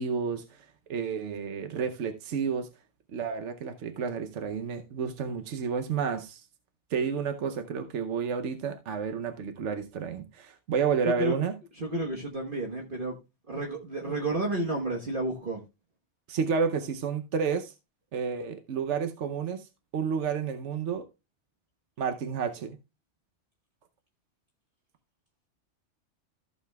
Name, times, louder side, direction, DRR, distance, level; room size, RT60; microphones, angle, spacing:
voice 1, 0.0-2.7 3.1-6.4 6.9-11.5 16.3-17.7 18.1-21.1 22.0-22.8, right 6 dB, 75° right, 1.1 m, -31 dB
voice 2, 11.0-11.4 11.8-13.2 13.5-15.6, right 2 dB, 45° right, 1.4 m, -31 dB
14.5 x 6.9 x 2.3 m
omnidirectional pair, 1.2 m